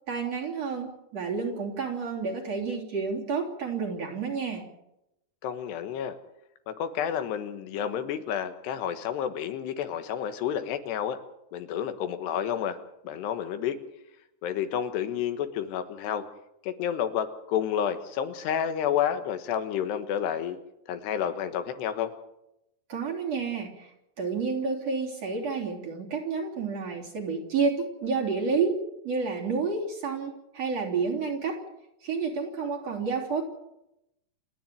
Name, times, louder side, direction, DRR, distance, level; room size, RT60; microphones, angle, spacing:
voice 1, 0.1-4.6 22.9-23.9 24.2-28.8 29.0-31.6 32.0-33.4, right 5 dB, 40° right, -1 dB, 4.2 m, -30 dB
voice 2, 5.4-6.2 6.7-11.2 11.5-12.8 13.0-13.8 14.4-16.3 16.6-20.6 20.9-22.1, left 9 dB, 80° left, 9 dB, 3.5 m, -30 dB
28.5 x 10.5 x 9.2 m, 0.85 s
omnidirectional pair, 4.8 m